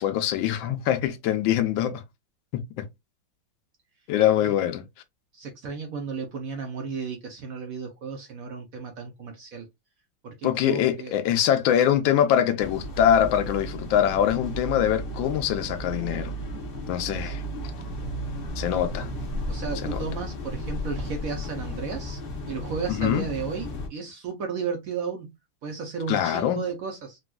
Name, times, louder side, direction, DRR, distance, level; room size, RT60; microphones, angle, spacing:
voice 1, 0.0-2.0 2.5-2.9 4.1-4.9 10.4-16.3 16.9-17.4 18.6-19.1 19.8-20.0 22.9-23.2 26.1-26.6, left 10 dB, 90° left, 1.3 m, -23 dB
voice 2, 5.3-9.7 10.2-11.2 17.2-17.4 19.5-22.2 22.5-25.3 25.6-27.2, right 5 dB, 65° right, 0.9 m, -34 dB
sound 1, 12.6-23.9, equal, 55° left, 0.6 m, -34 dB
4.1 x 2.3 x 2.3 m
omnidirectional pair, 2.0 m